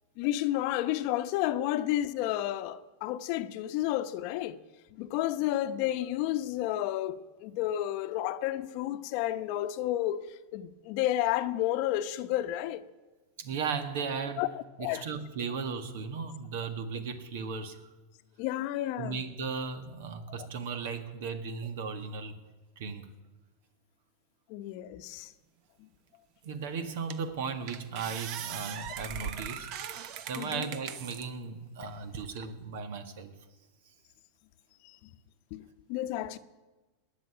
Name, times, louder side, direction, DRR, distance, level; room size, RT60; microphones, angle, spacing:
voice 1, 0.2-4.6 4.9-10.2 10.5-12.8 14.4-14.5 14.8-15.1 18.4-19.2 20.3-20.5 24.5-25.3 30.4-30.7 31.8-31.9 35.5-36.4, left 13 dB, 55° left, 0.8 m, -31 dB
voice 2, 13.4-14.5 14.8-17.8 19.0-22.4 22.8-23.1 26.4-29.7 30.0-33.3, right 5 dB, 70° right, 1.8 m, -36 dB
sound 1, 26.4-26.5 27.1-27.3 27.7-31.3 31.8-32.5, right 8 dB, 50° right, 1.0 m, -40 dB
20.0 x 6.7 x 9.9 m
supercardioid pair, 125°, 0 cm